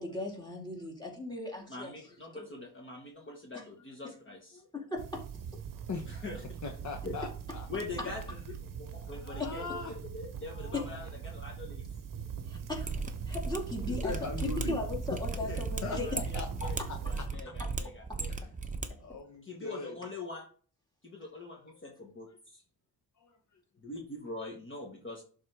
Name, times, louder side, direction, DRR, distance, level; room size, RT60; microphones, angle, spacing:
voice 1, 0.0-1.9 2.4-2.5 4.7-5.2 9.4-9.5 12.5-12.9 13.3-16.1, left 2 dB, 10° left, -1 dB, 2.1 m, -37 dB
voice 2, 1.7-4.6 6.0-6.4 7.0-7.2 7.7-8.2 8.6-11.8 15.5-15.6 16.0-18.3 19.4-20.5 21.0-22.6 23.8-25.2, left 2 dB, 30° left, 0 dB, 1.4 m, -43 dB
sound 1, 5.0-17.3, right 7 dB, 55° right, 0.8 m, -41 dB
voice 3, 6.6-7.7 8.3-8.4 9.0-9.9 10.5-11.0 13.2-13.3 13.9-14.8 15.8-16.0 16.3-17.0 18.3-18.5 19.0-20.0 21.7-21.8 23.2-23.6, left 4 dB, 45° left, 3 dB, 1.0 m, -41 dB
Mechanisms, 12.8-18.9 19.1-19.2, right 4 dB, 20° right, 0.7 m, -36 dB
11.5 x 3.8 x 3.4 m, 0.43 s
cardioid pair, 120°, 39 cm